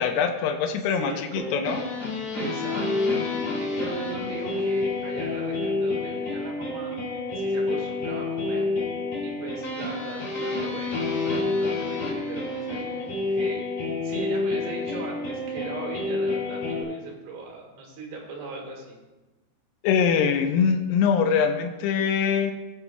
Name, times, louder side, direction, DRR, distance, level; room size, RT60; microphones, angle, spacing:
voice 1, 0.0-1.8 19.8-22.5, left 6 dB, 85° left, 4 dB, 2.7 m, -23 dB
voice 2, 0.9-1.6 2.3-6.9 7.4-8.7 9.2-19.0, right 3 dB, 75° right, -1 dB, 3.6 m, -39 dB
sound 1, 1.3-16.8, left 3 dB, 45° left, 2.9 m, -28 dB
16.5 x 6.9 x 2.3 m, 1.1 s
omnidirectional pair, 4.7 m